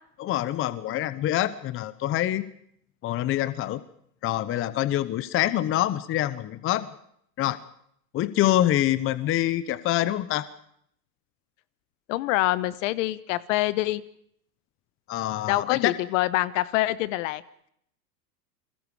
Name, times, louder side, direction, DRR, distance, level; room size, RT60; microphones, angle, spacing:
voice 1, 0.2-2.5 3.0-3.8 4.2-6.9 7.4-7.6 8.1-10.5 15.1-15.9, left 13 dB, 25° left, 16 dB, 0.9 m, -25 dB
voice 2, 12.1-14.0 15.5-17.4, left 17 dB, 50° left, 17 dB, 1.2 m, -25 dB
29.5 x 22.0 x 4.9 m, 0.70 s
hypercardioid pair, 105°, 48 cm